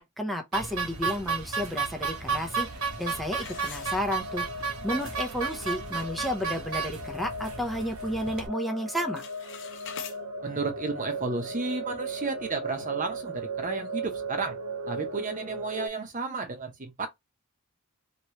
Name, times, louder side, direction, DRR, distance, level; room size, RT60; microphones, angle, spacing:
voice 1, 0.0-2.7 3.0-4.5 4.8-9.2, equal, ahead, 0.6 m, -32 dB
sound 1, 0.5-8.5, right 5 dB, 70° right, 1.0 m, -33 dB
sound 2, 1.4-15.9, right 2 dB, 90° right, 0.6 m, -38 dB
sound 3, 3.3-4.6 5.0-5.1 5.7-5.8 6.2-6.5 6.9-8.0 8.3-8.6 8.9-10.2, left 8 dB, 60° left, 0.7 m, -44 dB
voice 2, 10.4-14.6 14.9-17.1, right 3 dB, 35° right, 0.9 m, -32 dB
3.2 x 2.9 x 2.8 m
head